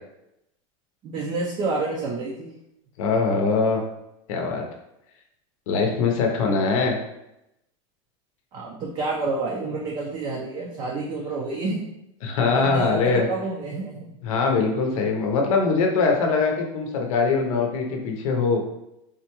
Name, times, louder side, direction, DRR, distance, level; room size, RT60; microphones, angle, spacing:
voice 1, 1.0-2.5 5.8-5.9 8.5-11.8 12.5-14.1, right 3 dB, 25° right, -2 dB, 0.4 m, -29 dB
voice 2, 3.0-3.8 4.3-4.6 5.7-7.0 12.2-13.3 14.2-18.6, left 4 dB, 80° left, 2 dB, 0.7 m, -22 dB
3.6 x 2.2 x 2.9 m, 0.85 s
supercardioid pair, 160°, 17 cm